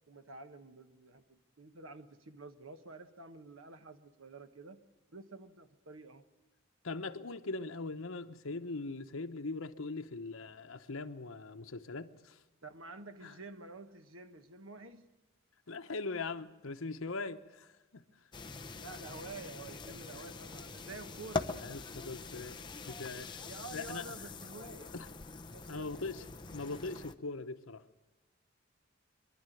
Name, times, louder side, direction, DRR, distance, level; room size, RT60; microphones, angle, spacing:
voice 1, 0.1-4.8 5.1-6.2 12.6-15.1 18.7-21.8 23.4-24.9 25.5-26.6, right 3 dB, 80° right, 9 dB, 1.3 m, -50 dB
voice 2, 6.8-12.4 13.2-13.4 15.7-18.0 21.6-22.6 22.9-23.4 23.7-24.0 24.9-25.1 25.7-27.8, left 3 dB, 85° left, 8 dB, 1.0 m, -41 dB
sound 1, 18.3-27.1, left 3 dB, 25° left, 0.8 m, -43 dB
24.5 x 12.0 x 9.2 m, 1.1 s
head